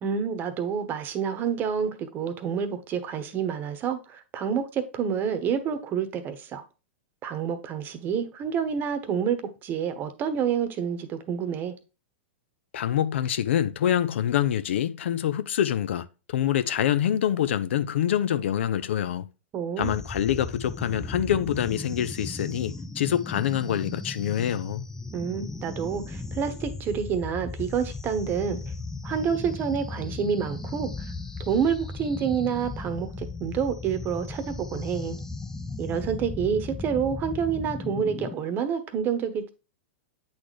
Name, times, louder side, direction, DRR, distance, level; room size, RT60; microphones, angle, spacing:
voice 1, 0.0-6.6 7.2-11.7 19.5-20.0 25.1-28.7 29.0-30.9 31.5-35.2 35.8-39.5, right 7 dB, 30° right, 1.0 m, -28 dB
voice 2, 12.7-19.3 19.8-24.8, left 10 dB, 75° left, 0.5 m, -26 dB
sound 1, 19.8-38.4, left 3 dB, 5° left, 0.4 m, -36 dB
8.6 x 4.1 x 3.2 m
hypercardioid pair, 125°, 6 cm